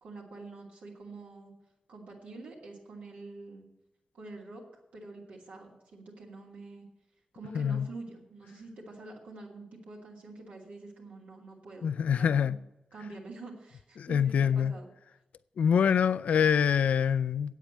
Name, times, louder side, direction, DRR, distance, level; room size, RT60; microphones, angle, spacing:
voice 1, 0.0-1.5 1.9-3.7 4.1-4.7 4.9-6.9 7.3-12.6 12.9-14.9, right 3 dB, 75° right, 2.7 m, -46 dB
voice 2, 7.5-7.9 11.8-12.6 14.0-14.7 15.6-17.6, left 7 dB, 75° left, 0.4 m, -25 dB
8.7 x 8.2 x 8.8 m
wide cardioid pair, 170°, 2 cm